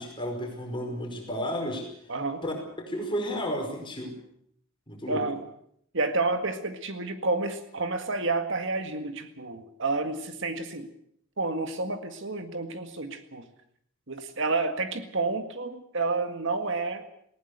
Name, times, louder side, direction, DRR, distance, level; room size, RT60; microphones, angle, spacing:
voice 1, 0.0-1.8 2.4-4.1 4.9-5.2, equal, 25° left, 2 dB, 5.1 m, -32 dB
voice 2, 2.1-2.4 5.1-5.4 5.9-10.9 11.4-13.5 14.1-17.0, right 3 dB, 60° right, 8 dB, 1.9 m, -30 dB
20.0 x 18.0 x 8.2 m, 0.68 s
head